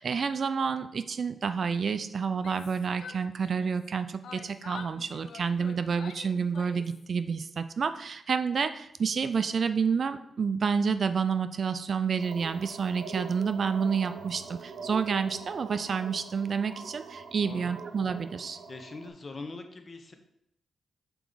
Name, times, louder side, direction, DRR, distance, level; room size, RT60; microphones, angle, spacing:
voice 1, 0.0-18.6, right 6 dB, 55° right, 11 dB, 0.4 m, -29 dB
Yell, 2.3-3.9 4.2-7.0, left 6 dB, 80° left, 0.5 m, -47 dB
sound 1, 12.2-19.1, right 5 dB, 80° right, 0.8 m, -43 dB
voice 2, 17.4-17.7 18.7-20.1, left 3 dB, 40° left, 6 dB, 0.9 m, -42 dB
6.9 x 4.6 x 3.9 m, 0.77 s
cardioid pair, 95°, 0 cm